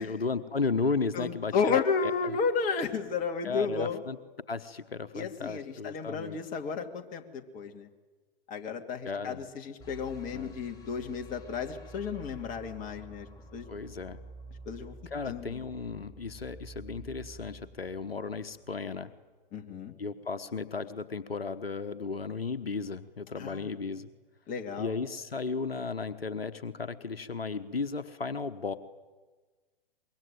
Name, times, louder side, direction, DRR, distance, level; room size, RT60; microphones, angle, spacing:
voice 1, 0.0-2.4 3.4-4.2 4.5-6.4 9.0-9.5 10.3-10.6 13.7-14.2 15.1-19.1 20.0-24.1 24.8-28.8, left 4 dB, 85° left, 10 dB, 1.2 m, -34 dB
voice 2, 1.1-4.0 5.1-7.9 8.5-13.3 13.5-13.7 14.7-14.9 15.3-15.6 19.5-19.9 23.4-23.7 24.5-24.9, left 5 dB, 25° left, 4 dB, 2.7 m, -32 dB
sound 1, 9.8-18.9, right 2 dB, 10° left, 5.4 m, -49 dB
24.5 x 22.5 x 9.3 m, 1.3 s
figure-of-eight pair, 110°, 29 cm